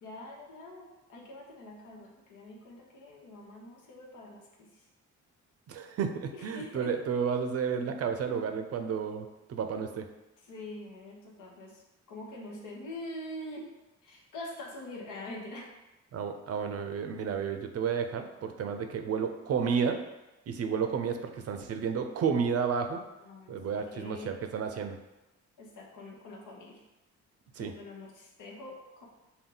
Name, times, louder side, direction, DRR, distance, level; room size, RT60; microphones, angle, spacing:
voice 1, 0.0-4.8 6.3-6.9 10.4-11.8 12.1-13.7 14.0-15.7 23.2-24.3 25.6-26.8 27.6-29.1, left 1 dB, 85° left, -1 dB, 1.0 m, -44 dB
voice 2, 5.7-10.1 16.1-20.0 20.5-23.0 23.5-25.0 27.6-27.7, right 6 dB, 55° right, 6 dB, 0.5 m, -31 dB
5.3 x 2.2 x 3.8 m, 1.0 s
cardioid pair, 90°, 30 cm